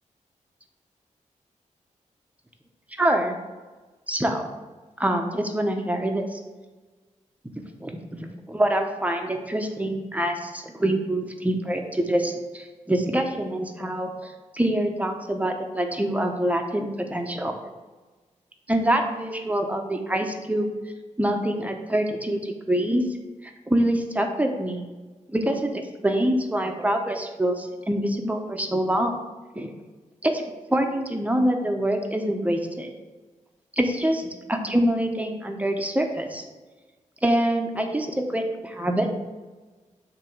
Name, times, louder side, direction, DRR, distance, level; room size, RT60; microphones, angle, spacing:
voice 1, 3.0-3.4 4.1-4.4 5.0-6.4 7.8-8.0 8.5-14.1 14.5-17.5 18.7-20.7 21.2-23.0 23.7-24.8 25.3-29.2 29.5-29.7 30.2-30.4 30.7-32.9 33.8-36.4 37.2-39.1, right 1 dB, 10° right, 3 dB, 1.0 m, -25 dB
7.5 x 3.0 x 6.1 m, 1.3 s
cardioid pair, 65°, 13 cm